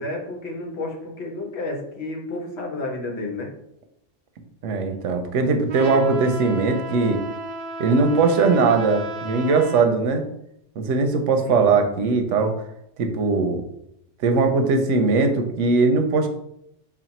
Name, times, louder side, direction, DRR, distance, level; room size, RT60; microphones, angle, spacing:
voice 1, 0.0-3.5 11.4-11.7, left 2 dB, 65° left, 1 dB, 1.1 m, -31 dB
voice 2, 4.6-7.2 7.8-10.2 10.8-12.5 13.0-13.6 14.2-16.3, right 4 dB, 90° right, 6 dB, 1.0 m, -20 dB
Trumpet, 5.7-9.9, right 2 dB, 60° right, 0.8 m, -33 dB
4.2 x 2.3 x 4.1 m, 0.77 s
omnidirectional pair, 1.2 m